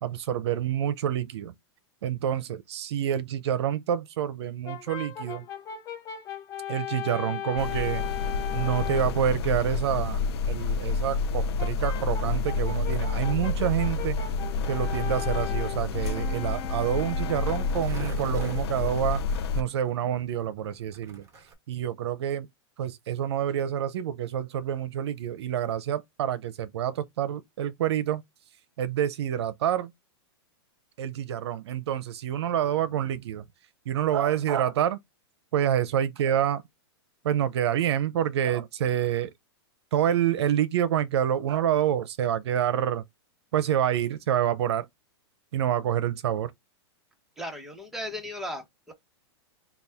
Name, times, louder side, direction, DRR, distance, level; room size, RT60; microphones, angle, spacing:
voice 1, 0.0-1.5 2.0-5.4 6.7-8.0 8.5-14.2 14.7-19.2 19.5-21.2 21.7-22.5 22.8-28.2 28.8-29.9 31.0-33.4 33.9-35.0 35.5-36.6 37.2-39.3 39.9-43.0 43.5-44.9 45.5-46.5, right 10 dB, 70° right, 0.6 m, -27 dB
Brass instrument, 4.6-9.2 11.6-17.9, left 9 dB, 25° left, 0.9 m, -38 dB
sound 1, 7.6-19.6, left 4 dB, 70° left, 0.5 m, -29 dB
Skateboard, 14.2-21.5, right 5 dB, 20° right, 1.2 m, -46 dB
voice 2, 47.4-48.9, left 1 dB, ahead, 1.0 m, -36 dB
4.2 x 2.3 x 3.4 m
supercardioid pair, 145°, 14 cm